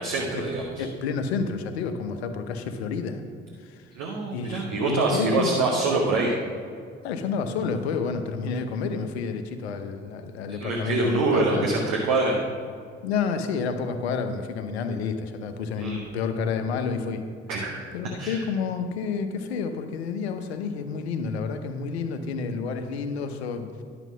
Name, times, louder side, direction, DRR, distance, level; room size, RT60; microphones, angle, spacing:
voice 1, 0.0-0.9 4.0-6.3 10.5-12.4 15.8-16.0 17.5-17.9 18.2-18.4, right 3 dB, 60° right, -1 dB, 1.3 m, -25 dB
voice 2, 0.8-3.2 3.6-3.9 4.3-5.8 7.0-11.8 13.0-17.2 17.9-23.8, left 5 dB, 75° left, 8 dB, 0.8 m, -30 dB
11.0 x 6.8 x 6.0 m, 2.2 s
figure-of-eight pair, 45°, 32 cm